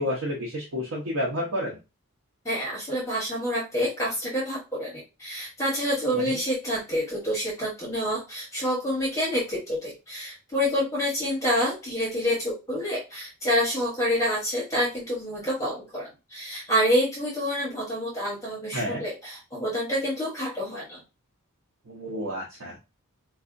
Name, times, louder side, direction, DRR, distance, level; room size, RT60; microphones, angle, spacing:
voice 1, 0.0-1.8 6.1-6.4 18.7-19.0 21.9-22.8, equal, 80° right, -3 dB, 0.8 m, -30 dB
voice 2, 2.4-21.0, equal, 15° left, -4 dB, 1.1 m, -27 dB
4.7 x 2.3 x 2.5 m, 0.28 s
head